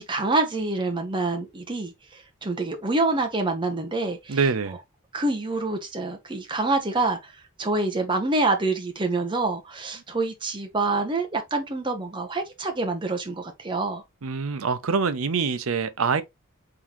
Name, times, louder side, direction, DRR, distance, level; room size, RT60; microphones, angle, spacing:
voice 1, 0.0-4.4 5.1-7.3 7.6-14.0, right 3 dB, 25° right, 0.8 m, -26 dB
voice 2, 4.3-4.8 14.2-16.2, right 5 dB, 80° right, 0.6 m, -25 dB
3.8 x 3.6 x 2.9 m
head